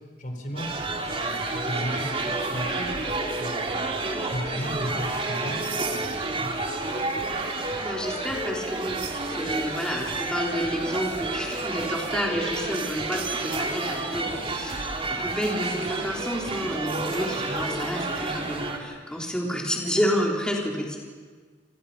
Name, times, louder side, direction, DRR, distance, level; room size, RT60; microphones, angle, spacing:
voice 1, 0.2-0.7 1.1-2.9 3.4-6.5, equal, 45° left, 4 dB, 4.3 m, -35 dB
sound 1, 0.6-18.8, right 3 dB, 30° right, 3.1 m, -30 dB
voice 2, 7.5-21.0, equal, 5° left, -2 dB, 3.8 m, -30 dB
29.5 x 26.5 x 5.8 m, 1.5 s
head